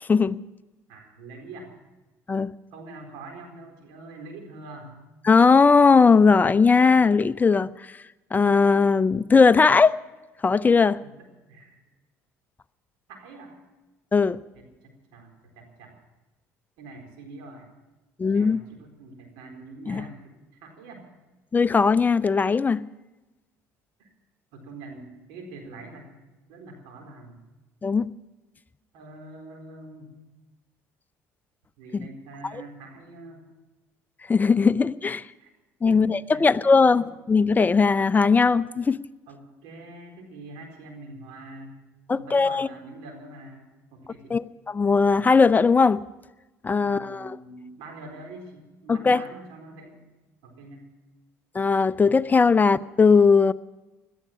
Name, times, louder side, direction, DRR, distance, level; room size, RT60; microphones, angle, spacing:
voice 1, 0.0-0.4 2.3-2.5 5.2-7.7 8.3-9.9 10.4-11.0 14.1-14.4 18.2-18.6 19.9-20.0 21.5-22.8 27.8-28.1 34.3-35.2 35.8-39.0 42.1-42.7 44.3-46.0 46.6-47.4 48.9-49.2 51.5-53.5, left 4 dB, 25° left, 14 dB, 0.6 m, -19 dB
voice 2, 0.9-1.7 2.7-4.9 11.0-11.8 13.1-13.6 14.5-15.9 16.8-17.7 18.2-21.1 24.0-24.1 24.5-26.1 26.5-27.4 28.9-30.1 31.8-33.4 35.4-35.5 35.8-36.1 36.3-37.0 39.3-41.8 42.1-44.4 46.8-50.0 50.4-50.9, right 2 dB, 80° right, 3 dB, 4.2 m, -44 dB
17.0 x 12.5 x 5.9 m, 1.1 s
hypercardioid pair, 75°, 8 cm